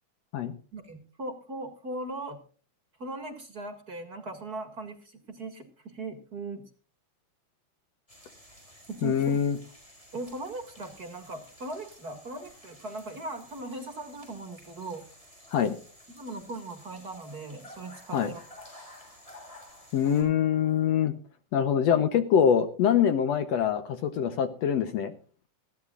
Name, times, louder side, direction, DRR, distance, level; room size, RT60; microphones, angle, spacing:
voice 1, 0.7-2.4 3.0-6.6 8.9-9.4 10.1-15.0 16.1-18.4, right 2 dB, 35° right, 6 dB, 2.1 m, -39 dB
sound 1, 8.1-20.2, left 1 dB, 10° left, 6.2 m, -52 dB
voice 2, 9.0-9.6 15.5-15.8 18.1-18.3 19.9-21.1 21.5-25.1, left 8 dB, 65° left, 10 dB, 1.9 m, -24 dB
20.5 x 15.0 x 2.5 m, 0.39 s
omnidirectional pair, 3.5 m